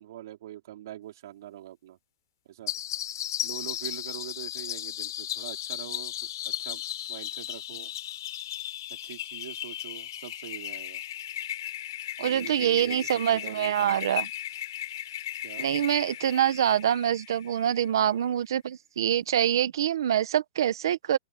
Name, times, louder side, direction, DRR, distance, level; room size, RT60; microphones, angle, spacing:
voice 1, 0.0-2.0 2.4-2.7 3.4-6.1 6.4-6.8 7.1-7.9 9.0-11.0 12.2-14.1 15.4-15.7, right 13 dB, 60° right, 4.9 m, -43 dB
sound 1, 2.7-17.9, left 12 dB, 65° left, 4.8 m, -36 dB
voice 2, 12.2-14.3 15.6-21.2, right 10 dB, 85° right, 1.0 m, -25 dB
open air
supercardioid pair, 180°, 2 cm